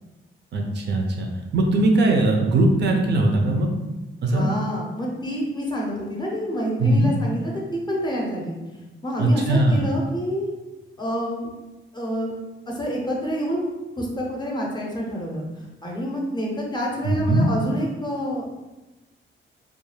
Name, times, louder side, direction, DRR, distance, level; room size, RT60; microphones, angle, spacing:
voice 1, 0.5-1.3 1.5-3.9 4.2-4.5 6.8-7.1 9.2-9.9 17.0-17.5, right 2 dB, 55° right, 2 dB, 0.4 m, -20 dB
voice 2, 4.2-8.6 9.0-10.5 11.0-11.5 11.9-12.3 12.7-13.7 14.0-15.4 15.8-18.5, equal, 20° left, -2 dB, 0.5 m, -27 dB
2.3 x 2.2 x 3.1 m, 1.1 s
cardioid pair, 115°, 21 cm